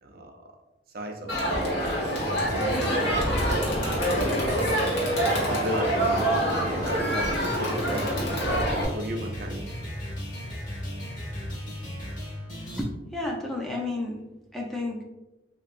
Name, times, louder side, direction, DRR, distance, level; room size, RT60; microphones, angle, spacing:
voice 1, 0.0-0.5 0.9-3.9 5.0-8.4 8.9-9.7, equal, 55° right, 3 dB, 0.5 m, -36 dB
Crowd, 1.3-8.9, equal, 75° left, 1.1 m, -26 dB
sound 1, 2.2-12.8, equal, 45° left, 1.2 m, -36 dB
voice 2, 12.8-14.2 14.5-15.0, left 2 dB, ahead, -2 dB, 0.4 m, -31 dB
3.3 x 3.0 x 2.5 m, 1.0 s
head